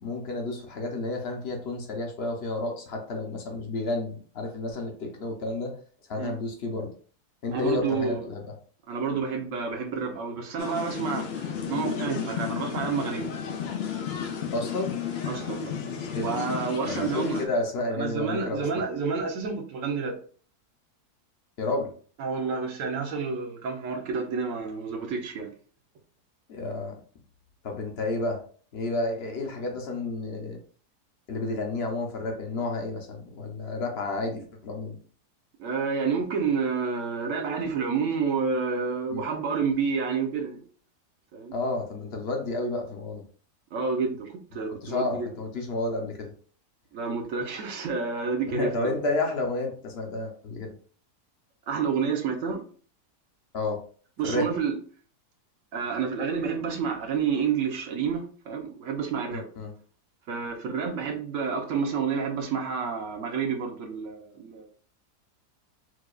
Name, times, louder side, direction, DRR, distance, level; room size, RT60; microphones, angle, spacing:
voice 1, 0.0-5.7 6.1-6.9 7.4-8.5 14.5-14.9 16.1-16.3 16.9-18.8 21.6-21.9 26.5-26.9 27.6-28.4 28.7-30.6 31.3-35.0 39.1-39.2 41.5-43.2 44.5-46.3 48.5-50.7 53.5-53.8 54.2-54.5 59.3-59.7, left 2 dB, 55° left, 0.7 m, -31 dB
voice 2, 7.5-8.2 8.9-13.3 15.3-15.8 16.1-17.5 17.9-20.2 22.2-25.5 35.6-40.6 41.3-41.5 43.7-45.3 46.9-49.0 51.7-52.6 54.2-54.8 55.7-59.5 60.3-64.7, right 5 dB, 60° right, 0.9 m, -29 dB
sound 1, 10.6-17.5, left 7 dB, 85° left, 0.5 m, -33 dB
4.7 x 2.2 x 2.3 m
omnidirectional pair, 1.7 m